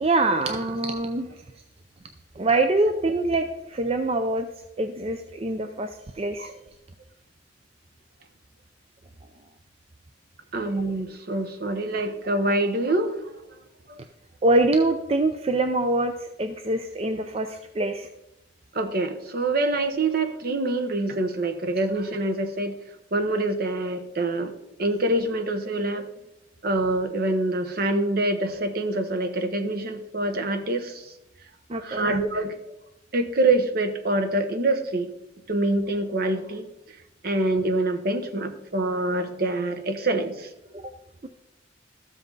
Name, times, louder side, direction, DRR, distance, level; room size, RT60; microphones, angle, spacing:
voice 1, 0.0-1.3 2.4-4.5 4.8-5.9 6.2-6.5 14.4-18.1 31.7-32.1, right 2 dB, 30° right, 7 dB, 0.5 m, -24 dB
voice 2, 10.5-13.2 13.9-14.0 18.7-22.7 23.1-24.5 24.8-26.1 26.6-31.0 31.8-32.8 33.1-35.1 35.5-36.7 37.2-40.5, right 2 dB, 55° right, 8 dB, 1.0 m, -25 dB
13.5 x 7.4 x 3.9 m, 0.88 s
head